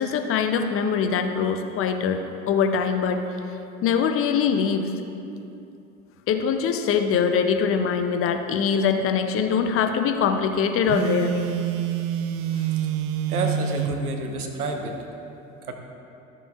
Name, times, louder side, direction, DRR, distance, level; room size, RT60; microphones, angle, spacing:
voice 1, 0.0-3.2 3.8-4.9 6.3-11.4, left 6 dB, 30° left, 6 dB, 0.6 m, -23 dB
Telephone, 10.9-14.0, right 9 dB, 35° right, 0.4 m, -26 dB
voice 2, 13.3-15.0 15.7-15.8, right 3 dB, 90° right, 4 dB, 1.0 m, -29 dB
13.0 x 6.9 x 2.4 m, 2.7 s
hypercardioid pair, 85°, 43 cm